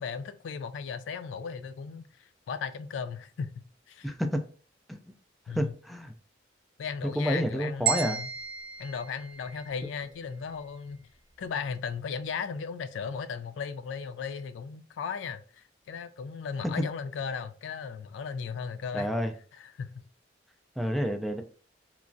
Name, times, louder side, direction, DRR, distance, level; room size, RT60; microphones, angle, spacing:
voice 1, 0.0-4.1 5.5-5.7 6.8-8.3 8.8-11.1 11.4-19.1 19.6-20.1, left 6 dB, 85° left, 0.3 m, -36 dB
voice 2, 4.0-4.4 4.9-5.1 5.5-6.1 7.2-8.2 18.9-19.3 20.8-21.4, equal, ahead, 0.3 m, -29 dB
sound 1, 7.9-10.0, right 7 dB, 55° right, 0.7 m, -33 dB
3.0 x 2.3 x 2.5 m
head